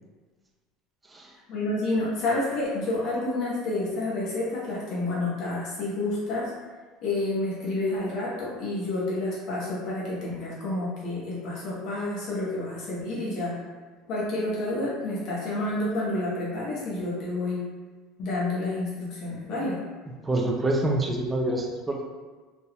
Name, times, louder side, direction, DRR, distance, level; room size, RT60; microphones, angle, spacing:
voice 1, 1.5-6.5 7.0-13.5 14.1-17.6 18.2-19.8, left 2 dB, 45° left, -6 dB, 0.9 m, -29 dB
voice 2, 20.2-22.0, right 1 dB, 10° right, 0 dB, 0.3 m, -26 dB
4.1 x 3.3 x 2.2 m, 1.4 s
cardioid pair, 175°, 0 cm